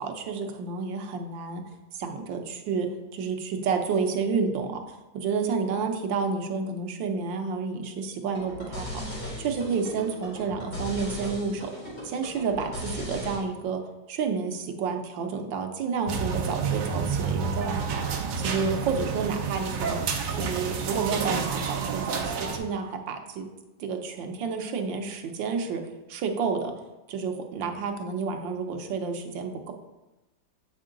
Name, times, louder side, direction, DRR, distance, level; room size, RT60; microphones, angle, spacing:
voice 1, 0.0-1.6 1.9-9.0 9.4-11.7 12.0-13.8 14.1-18.0 18.4-20.0 20.3-23.5 23.8-25.8 26.1-26.7 27.1-29.7, right 5 dB, 90° right, 5 dB, 1.5 m, -30 dB
sound 1, 8.3-13.4, left 1 dB, 30° left, 2.7 m, -37 dB
sound 2, 16.1-22.6, right 5 dB, 70° right, 1.4 m, -29 dB
8.2 x 4.5 x 3.8 m, 1.0 s
omnidirectional pair, 2.0 m